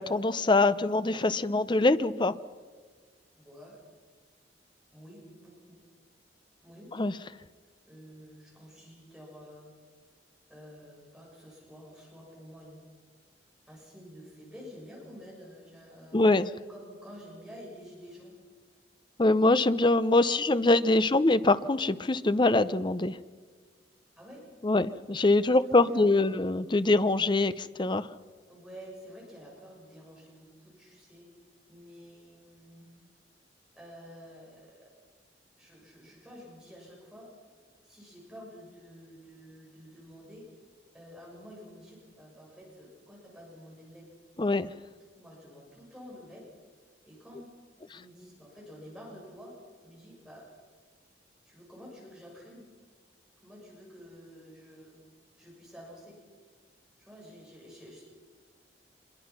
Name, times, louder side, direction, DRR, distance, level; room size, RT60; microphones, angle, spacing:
voice 1, 0.0-2.3 7.0-7.1 16.1-16.5 19.2-23.2 24.6-28.1 44.4-44.7, left 2 dB, 25° left, 14 dB, 0.6 m, -24 dB
voice 2, 3.4-3.8 4.9-5.8 6.6-6.9 7.8-9.7 10.5-12.8 13.7-16.2 16.7-18.3 20.3-20.4 24.2-24.5 25.5-26.4 28.5-31.3 31.7-32.9 33.7-34.9 35.6-37.3 37.8-40.5 40.9-44.1 45.1-46.5 47.0-47.5 47.9-49.6 49.8-50.5 51.4-52.7 53.4-55.0 55.4-56.2 57.0-58.0, equal, 5° right, -4 dB, 6.7 m, -50 dB
25.0 x 22.5 x 6.0 m, 1.5 s
head